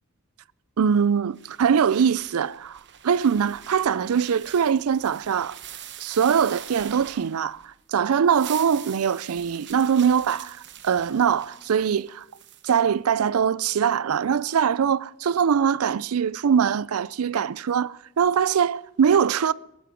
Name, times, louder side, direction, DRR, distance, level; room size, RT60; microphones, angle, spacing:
voice 1, 0.8-2.8 3.0-5.6 6.0-12.2 12.6-19.5, right 7 dB, 85° right, 0.4 m, -22 dB
sound 1, 1.4-7.7 8.1-12.8, right 10 dB, 55° right, 1.0 m, -44 dB
20.0 x 11.5 x 5.1 m
head